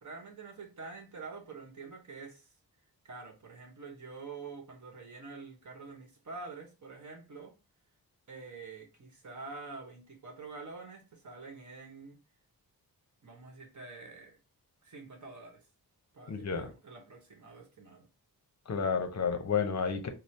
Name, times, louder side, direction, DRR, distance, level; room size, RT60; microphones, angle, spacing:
voice 1, 0.0-2.4 3.0-7.5 8.3-12.2 13.2-14.4 14.8-15.6 16.1-18.1, right 4 dB, 50° right, 1.0 m, -47 dB
voice 2, 16.3-16.7 18.7-20.1, left 6 dB, 45° left, 0.6 m, -31 dB
4.3 x 2.0 x 3.2 m
wide cardioid pair, 175°, 37 cm